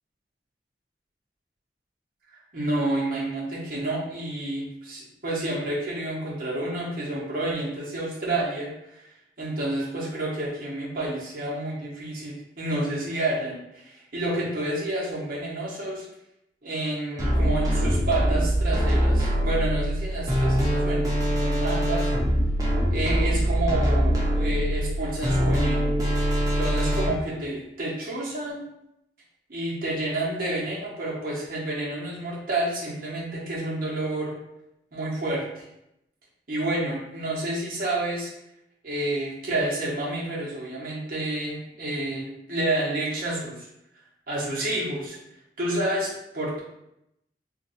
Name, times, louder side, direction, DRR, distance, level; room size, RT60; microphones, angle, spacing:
voice 1, 2.5-9.1 9.4-16.1 16.6-22.1 22.9-25.9 26.6-28.6 29.5-34.3 34.9-35.6 36.5-38.3 38.8-43.7 44.3-45.2 45.6-46.6, right 1 dB, 50° right, -5 dB, 0.9 m, -29 dB
sound 1, 17.2-27.1, equal, 20° right, 0.6 m, -23 dB
2.5 x 2.3 x 4.0 m, 0.83 s
head